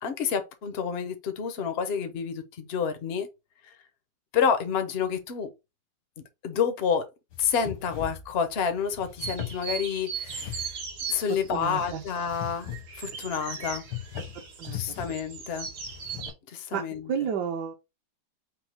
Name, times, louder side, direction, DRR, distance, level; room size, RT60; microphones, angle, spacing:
voice 1, 0.0-3.3 3.6-3.7 4.3-5.5 6.4-7.1 7.4-10.8 11.1-13.8 14.7-15.7 16.5-17.1, left 7 dB, 70° left, 0.5 m, -29 dB
sound 1, 7.3-16.3, left 9 dB, 90° left, 2.0 m, -41 dB
sound 2, 9.2-16.3, right 6 dB, 85° right, 2.1 m, -38 dB
voice 2, 11.5-12.0 14.3-14.8 16.7-16.8 17.1-17.8, right 7 dB, 70° right, 1.1 m, -31 dB
5.3 x 2.1 x 4.3 m
omnidirectional pair, 2.1 m